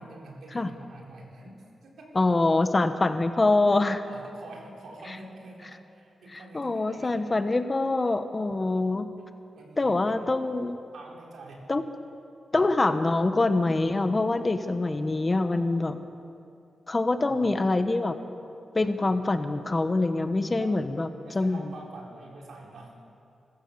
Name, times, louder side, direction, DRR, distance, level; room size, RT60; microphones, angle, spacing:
voice 1, 0.0-2.2 4.0-7.3 9.5-10.2 10.5-10.6 10.9-11.7 17.1-17.6 20.6-20.8 21.2-23.0, right 2 dB, 85° right, -1 dB, 4.0 m, -46 dB
voice 2, 2.1-4.0 6.3-9.1 9.8-10.8 11.7-11.8 12.5-16.0 16.9-18.2 18.7-21.1 21.3-21.6, left 2 dB, 30° left, 9 dB, 1.3 m, -25 dB
26.5 x 15.0 x 7.0 m, 2.5 s
cardioid pair, 85°, 0 cm